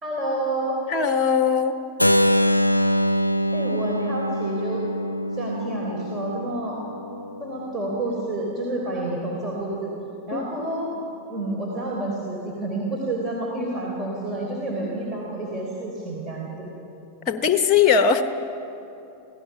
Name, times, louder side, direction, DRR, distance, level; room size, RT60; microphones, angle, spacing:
voice 1, 0.0-0.8 3.5-4.8 5.3-6.8 7.4-9.9 10.3-10.9 11.3-16.7, right 2 dB, 20° right, -2 dB, 3.8 m, -29 dB
voice 2, 0.9-1.8 10.3-10.5 17.3-18.2, left 7 dB, 30° left, 9 dB, 1.0 m, -19 dB
Keyboard (musical), 2.0-7.8, equal, 85° left, 0.5 m, -24 dB
27.5 x 17.0 x 6.1 m, 2.8 s
figure-of-eight pair, 90°, 0 cm